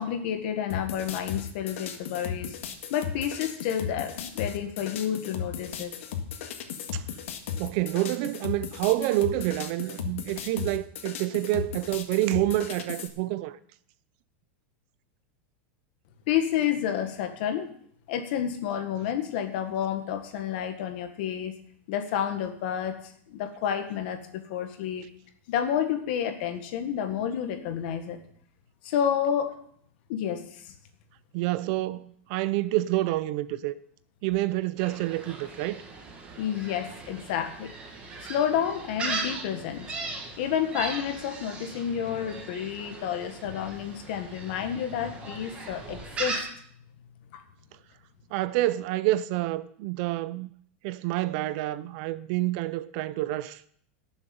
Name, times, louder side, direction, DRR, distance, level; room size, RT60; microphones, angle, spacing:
voice 1, 0.0-2.6 2.9-5.9 16.3-17.7 18.1-21.6 21.9-23.0 23.3-25.1 25.5-28.2 28.8-29.6 30.1-30.7 36.4-37.7 38.2-40.0 40.4-46.4 47.3-47.4, left 9 dB, 50° left, 1.7 m, -30 dB
sound 1, 0.7-13.1, left 8 dB, 80° left, 1.8 m, -36 dB
voice 2, 7.6-13.6 31.3-33.7 34.2-35.8 48.3-50.5 50.8-53.6, right 16 dB, 40° right, 0.4 m, -28 dB
Gull seagull, 34.8-46.4, right 3 dB, 15° right, 1.9 m, -38 dB
18.0 x 7.3 x 5.4 m
supercardioid pair, 180°, 7 cm